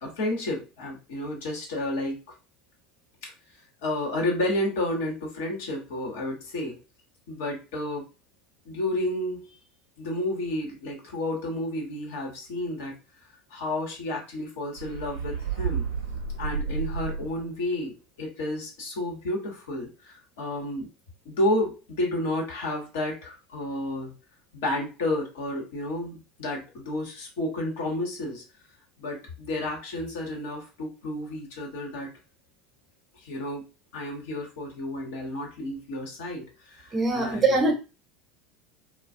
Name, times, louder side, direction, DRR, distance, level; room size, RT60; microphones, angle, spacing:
voice 1, 0.0-2.2 3.2-3.3 3.8-6.8 7.3-8.1 8.6-9.6 10.0-12.9 13.5-15.8 16.4-20.9 21.2-24.1 24.5-28.4 29.0-32.1 33.2-33.7 33.9-37.7, left 1 dB, 70° left, 1.0 m, -31 dB
sound 1, 14.8-17.6, right 6 dB, 70° right, 0.5 m, -31 dB
voice 2, 36.9-37.7, right 3 dB, 30° right, 0.8 m, -22 dB
2.3 x 2.1 x 2.6 m
figure-of-eight pair, 70°, 0 cm